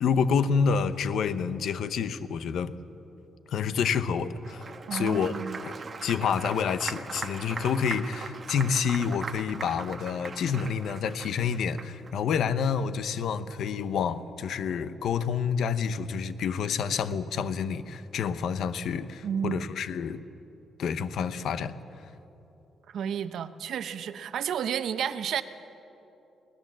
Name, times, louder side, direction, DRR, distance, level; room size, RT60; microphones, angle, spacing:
voice 1, 0.0-2.7 3.5-5.4 5.6-5.7 6.0-20.2 20.8-21.8, left 6 dB, 70° left, 13 dB, 0.8 m, -28 dB
Applause, 4.3-12.1, right 4 dB, 35° right, 1.2 m, -40 dB
voice 2, 4.9-5.6 19.2-19.7 22.9-25.4, right 8 dB, 70° right, 11 dB, 0.8 m, -31 dB
21.0 x 19.0 x 7.5 m, 2.9 s
cardioid pair, 125°, 0 cm